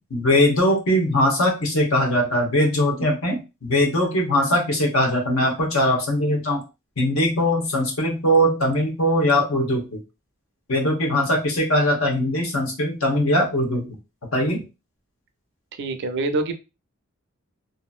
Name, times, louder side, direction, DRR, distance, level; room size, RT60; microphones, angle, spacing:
voice 1, 0.1-6.6 7.0-10.0 10.7-13.9 14.3-14.6, left 1 dB, 70° left, 1 dB, 1.0 m, -21 dB
voice 2, 15.7-16.5, right 2 dB, 55° right, 7 dB, 0.5 m, -25 dB
2.8 x 2.5 x 2.4 m, 0.27 s
head